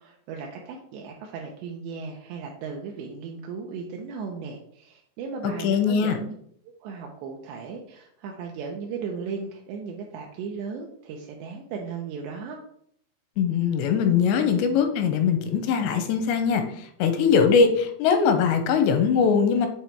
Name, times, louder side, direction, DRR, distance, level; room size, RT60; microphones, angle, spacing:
voice 1, 0.0-6.3 6.8-12.6, right 5 dB, 80° right, 0 dB, 2.8 m, -36 dB
voice 2, 5.6-6.1 13.4-16.6 17.0-19.7, left 6 dB, 85° left, 7 dB, 2.8 m, -21 dB
8.6 x 3.0 x 4.4 m, 0.67 s
omnidirectional pair, 5.1 m